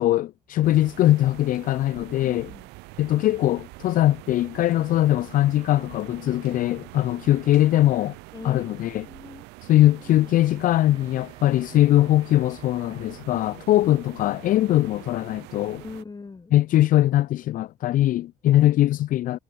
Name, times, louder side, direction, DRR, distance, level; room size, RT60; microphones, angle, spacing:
voice 1, 0.0-2.5 3.0-8.2 8.4-9.0 9.6-15.8 16.5-19.4, left 14 dB, 45° left, 0.5 m, -21 dB
sound 1, 0.6-16.0, right 24 dB, 60° right, 1.0 m, -45 dB
voice 2, 2.1-2.7 8.3-9.5 10.0-10.3 13.4-13.7 15.8-16.5 18.5-18.7, left 4 dB, 20° left, 2.2 m, -41 dB
Wind instrument woodwind instrument, 10.2-13.3, right 4 dB, 25° right, 3.6 m, -56 dB
figure-of-eight pair, 55°, 19 cm